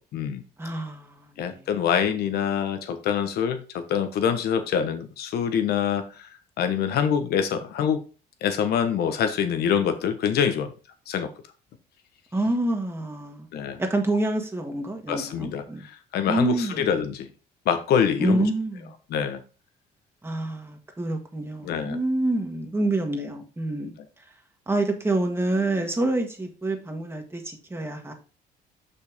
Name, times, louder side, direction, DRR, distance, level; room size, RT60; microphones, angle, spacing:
voice 1, 0.0-0.4 1.4-6.3 6.6-8.0 8.4-10.7 11.1-11.3 13.5-13.8 15.1-17.3 17.6-18.5 19.1-19.4 21.6-22.0, left 8 dB, 70° left, 1.1 m, -25 dB
voice 2, 0.6-1.7 12.3-13.5 13.8-15.9 16.3-16.8 18.2-18.9 20.2-23.9 24.7-28.1, right 2 dB, 15° right, 1.6 m, -27 dB
6.5 x 5.7 x 3.5 m
cardioid pair, 110°, 17 cm